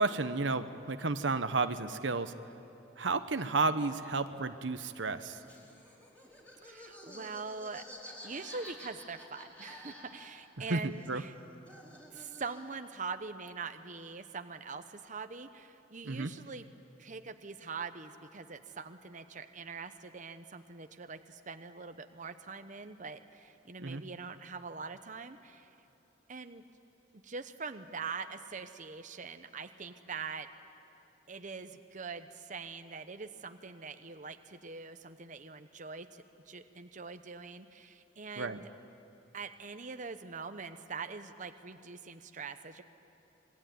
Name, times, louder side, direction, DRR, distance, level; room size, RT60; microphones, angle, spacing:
voice 1, 0.0-2.3 3.0-5.4 10.7-10.8 11.1-11.2 16.0-16.3 23.8-24.0 38.4-38.6, right 3 dB, 80° right, 10 dB, 1.0 m, -32 dB
Laughter, 5.4-10.6 10.9-12.8, left 1 dB, 10° left, 4.4 m, -51 dB
voice 2, 6.6-11.3 12.1-16.6 17.0-25.7 26.3-26.6 27.2-30.5 31.3-38.7 39.3-42.8, right 4 dB, 45° right, 8 dB, 0.9 m, -43 dB
26.5 x 21.5 x 9.4 m, 3.0 s
head